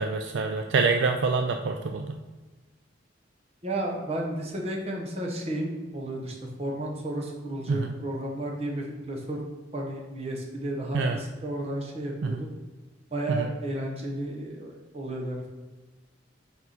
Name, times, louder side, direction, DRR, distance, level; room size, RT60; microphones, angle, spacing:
voice 1, 0.0-2.2 7.7-7.9 10.9-11.2 12.2-12.4 13.3-13.5, right 4 dB, 65° right, 5 dB, 0.3 m, -26 dB
voice 2, 3.6-9.4 9.7-12.5 13.1-15.5, right 1 dB, 30° right, 0 dB, 1.1 m, -33 dB
5.5 x 4.6 x 4.0 m, 1.2 s
head